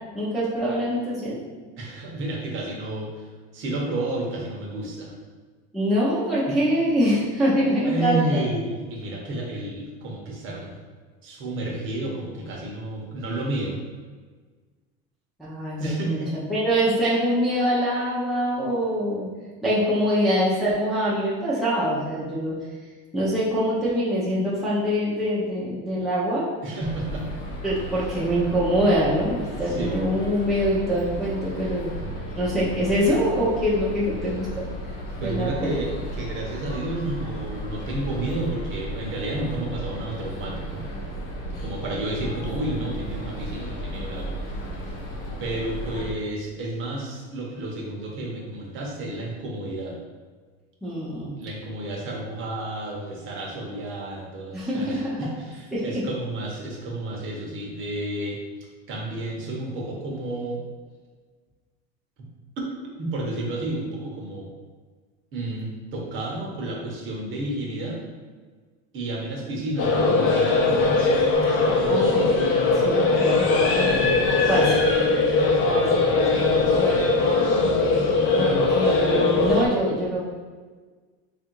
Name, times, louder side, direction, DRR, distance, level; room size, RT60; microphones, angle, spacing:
voice 1, 0.1-1.4 5.7-8.4 15.4-19.3 19.6-22.6 23.1-26.5 27.6-31.9 32.4-34.6 35.2-35.7 50.8-51.3 54.5-55.2 55.7-56.0 71.8-72.4 72.7-74.1 74.5-74.8 75.7-77.0 78.4-80.2, equal, ahead, -9 dB, 0.6 m, -24 dB
voice 2, 1.8-3.1 3.5-5.1 6.5-6.6 7.8-10.7 11.2-13.8 15.8-16.4 26.6-27.3 29.7-30.0 35.2-40.8 41.6-44.4 45.4-50.0 51.3-58.4 58.9-60.6 63.0-64.5 65.3-68.0 68.9-71.1 74.4-74.8 75.5-76.1 76.4-77.1, right 2 dB, 40° right, -1 dB, 0.9 m, -31 dB
sound 1, 26.8-46.1, equal, 65° left, 0.9 m, -34 dB
sound 2, 69.8-79.7, left 3 dB, 40° left, 0.6 m, -20 dB
3.4 x 2.5 x 4.5 m, 1.4 s
cardioid pair, 160°, 30 cm